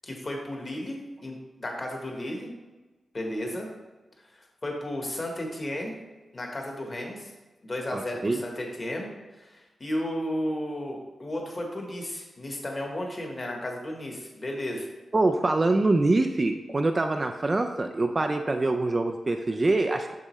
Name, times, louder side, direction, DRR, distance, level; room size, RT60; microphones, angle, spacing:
voice 1, 0.0-2.5 3.1-3.7 4.3-6.0 6.3-7.3 7.6-9.1 9.4-14.9, left 1 dB, 25° left, 1 dB, 1.1 m, -33 dB
voice 2, 7.9-8.4 15.1-20.1, right 2 dB, 25° right, 5 dB, 0.3 m, -24 dB
7.2 x 6.6 x 3.1 m, 1.2 s
wide cardioid pair, 180°, 0 cm